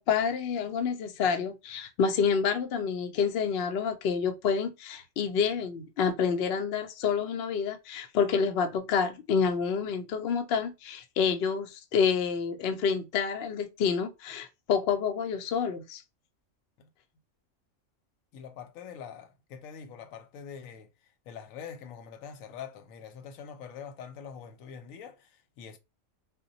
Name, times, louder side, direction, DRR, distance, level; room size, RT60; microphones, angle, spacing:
voice 1, 0.0-16.0, left 6 dB, 60° left, 0.7 m, -28 dB
voice 2, 18.3-20.9 21.3-25.8, left 7 dB, 90° left, 1.0 m, -44 dB
2.2 x 2.1 x 3.8 m
omnidirectional pair, 1.4 m